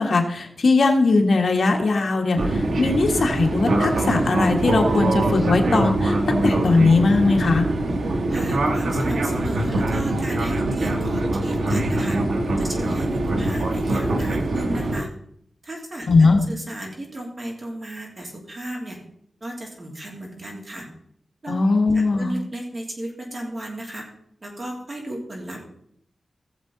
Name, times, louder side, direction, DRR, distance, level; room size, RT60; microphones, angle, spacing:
voice 1, 0.0-7.7 16.1-16.4 21.5-22.3, left 3 dB, 60° left, 3 dB, 1.6 m, -19 dB
Fixed-wing aircraft airplane, 2.4-15.0, right 2 dB, 80° right, 1.3 m, -23 dB
voice 2, 8.3-12.2 12.6-15.1 15.6-19.0 19.4-20.9 21.4-21.6 21.9-24.0 24.4-25.6, right 1 dB, 40° right, -1 dB, 3.0 m, -34 dB
16.0 x 7.3 x 4.0 m, 0.69 s
wide cardioid pair, 155°, 0 cm